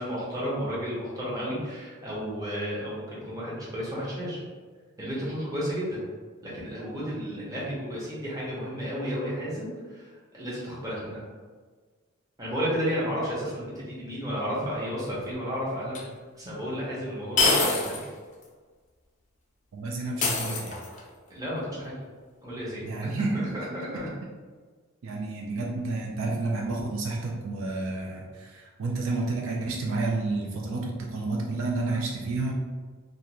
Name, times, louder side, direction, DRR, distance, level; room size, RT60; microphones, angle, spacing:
voice 1, 0.0-4.4 5.0-6.0 6.4-11.2 12.4-16.0 16.3-18.0 21.3-21.9 22.4-23.2 23.5-24.1, equal, 15° right, -7 dB, 0.7 m, -32 dB
sound 1, 15.9-16.0 17.4-18.1 18.4-18.5 20.2-21.1, left 3 dB, 35° left, 0.4 m, -25 dB
voice 2, 19.7-20.7 22.8-24.1 25.0-32.5, right 3 dB, 65° right, -1 dB, 0.4 m, -30 dB
2.5 x 2.3 x 2.9 m, 1.5 s
head